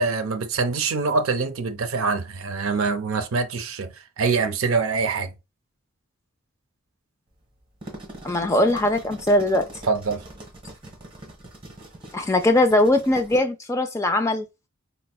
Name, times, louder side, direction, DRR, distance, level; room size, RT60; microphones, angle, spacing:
voice 1, 0.0-3.9 4.2-5.3 9.9-10.2, right 4 dB, 80° right, 0.5 m, -24 dB
sound 1, 7.6-13.4, right 1 dB, 25° right, 0.9 m, -42 dB
voice 2, 8.2-9.7 12.1-14.5, left 1 dB, 15° left, 0.3 m, -20 dB
4.3 x 2.1 x 2.3 m
head